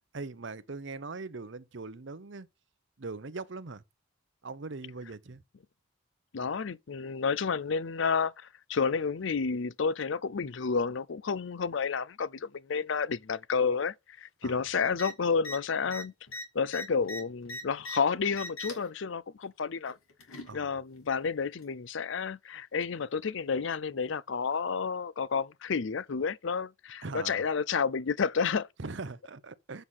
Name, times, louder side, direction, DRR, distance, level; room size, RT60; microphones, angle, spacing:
voice 1, 0.1-2.5 3.0-3.8 4.4-5.4 14.4-14.7 20.5-20.8 27.0-27.4 28.8-29.8, right 3 dB, 60° right, 0.7 m, -41 dB
voice 2, 6.3-16.1 16.5-20.0 20.5-28.7, left 5 dB, 60° left, 0.5 m, -30 dB
sound 1, 14.9-15.1 15.4-15.6 15.8-18.0 18.3-18.9 19.9-20.5 21.6-21.7, left 1 dB, 85° left, 2.5 m, -40 dB
7.8 x 5.6 x 6.3 m
head